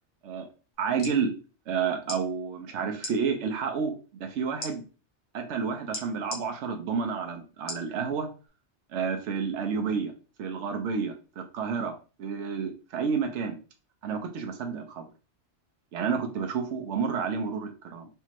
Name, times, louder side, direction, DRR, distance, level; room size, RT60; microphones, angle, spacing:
sound 1, 0.7-1.2 2.0-2.2 3.0-3.1 4.6-4.7 5.9-6.4 7.7-7.9 8.5-8.6, left 2 dB, 90° left, 1.3 m, -36 dB
voice 1, 0.8-1.3 1.7-3.9 4.2-4.8 5.3-8.3 8.9-10.1 10.4-13.6 14.0-15.0 15.9-18.1, right 6 dB, 75° right, 4 dB, 1.0 m, -30 dB
3.3 x 2.8 x 3.0 m, 0.34 s
omnidirectional pair, 1.2 m